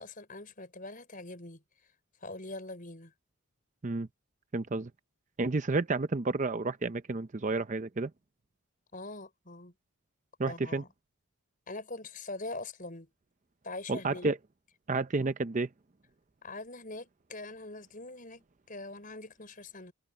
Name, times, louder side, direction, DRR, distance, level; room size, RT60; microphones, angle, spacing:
voice 1, 0.0-1.6 2.2-3.1 8.9-9.7 10.5-10.9 11.7-13.1 13.6-14.3 16.4-19.9, left 2 dB, 40° left, 5.7 m, -43 dB
voice 2, 4.5-4.9 5.4-8.1 10.4-10.8 13.9-14.4 14.9-15.7, right 3 dB, 35° right, 0.5 m, -30 dB
head